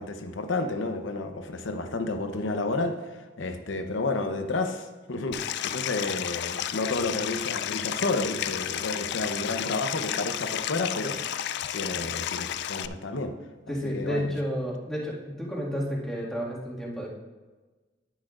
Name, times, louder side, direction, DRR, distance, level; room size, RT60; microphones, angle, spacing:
voice 1, 0.0-11.4 11.7-13.3 13.7-14.3, left 2 dB, 75° left, 7 dB, 0.8 m, -31 dB
Stream, 5.3-12.9, left 11 dB, 60° left, 0.3 m, -32 dB
voice 2, 13.7-17.1, equal, 5° left, -6 dB, 1.9 m, -31 dB
10.0 x 10.0 x 2.5 m, 1.3 s
head